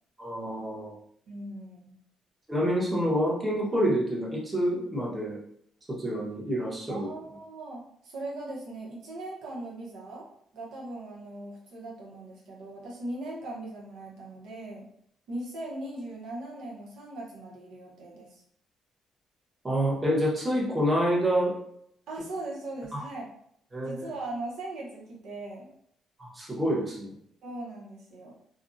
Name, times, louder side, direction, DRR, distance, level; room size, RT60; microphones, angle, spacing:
voice 1, 0.2-0.9 2.5-5.4 5.9-7.1 19.6-21.5 22.9-23.0 23.7-24.1 26.2-27.1, equal, 20° right, -4 dB, 0.8 m, -27 dB
voice 2, 1.3-1.9 6.9-10.3 10.5-14.8 15.3-18.4 22.1-23.3 23.8-25.7 27.4-28.3, right 2 dB, 80° right, -4 dB, 0.7 m, -39 dB
2.4 x 2.0 x 2.5 m, 0.68 s
cardioid pair, 90°, 0 cm